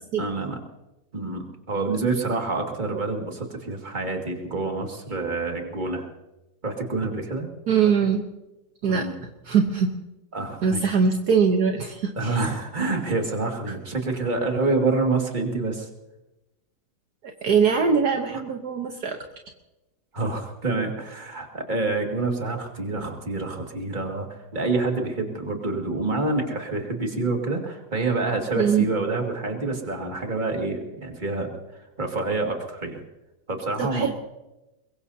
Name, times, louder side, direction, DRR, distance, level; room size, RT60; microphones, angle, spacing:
voice 1, 0.2-0.6 1.1-6.1 6.6-7.5 8.9-9.1 10.3-10.8 12.2-15.9 20.1-31.5 32.0-33.0 33.5-34.1, right 3 dB, 25° right, 2 dB, 2.2 m, -27 dB
voice 2, 7.7-8.2 8.8-9.1 9.4-9.9 10.6-12.4 13.7-13.8 17.4-19.2 28.6-28.9 33.8-34.1, right 6 dB, 65° right, 4 dB, 1.6 m, -22 dB
22.5 x 22.5 x 2.8 m, 0.98 s
omnidirectional pair, 1.9 m